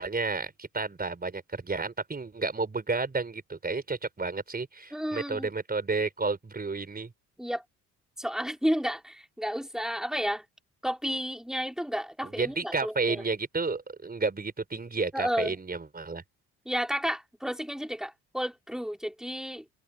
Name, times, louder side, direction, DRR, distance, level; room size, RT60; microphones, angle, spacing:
voice 1, 0.0-7.1 12.2-16.2, right 4 dB, 25° right, 5.0 m, -31 dB
voice 2, 4.9-5.5 7.4-7.6 8.2-10.4 10.8-13.2 15.1-15.5 16.6-19.6, equal, ahead, 5.1 m, -32 dB
supercardioid pair, 65°, 35 cm